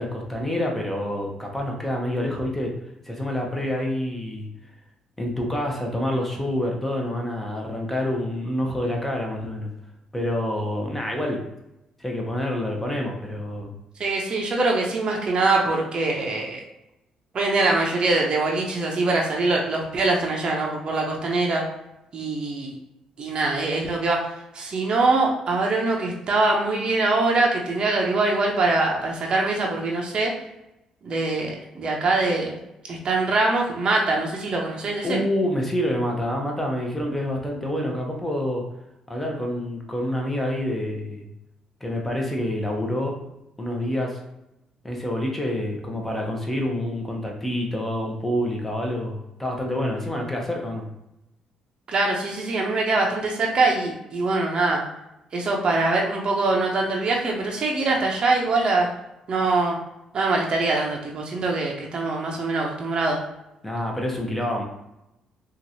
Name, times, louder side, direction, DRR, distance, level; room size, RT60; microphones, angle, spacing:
voice 1, 0.0-2.7 3.0-4.5 5.2-9.7 10.1-11.4 12.0-13.7 35.0-38.6 39.1-41.2 41.8-43.2 43.6-44.2 44.8-50.8 63.6-64.6, left 1 dB, 10° left, 0 dB, 0.8 m, -27 dB
voice 2, 14.0-16.6 17.3-21.6 22.1-22.7 23.2-24.2 24.5-30.3 31.0-32.6 32.9-35.2 51.9-54.8 55.3-58.9 59.3-59.8 60.1-63.2, right 3 dB, 50° right, -1 dB, 0.6 m, -23 dB
2.9 x 2.4 x 2.7 m, 0.88 s
supercardioid pair, 70°, 2 cm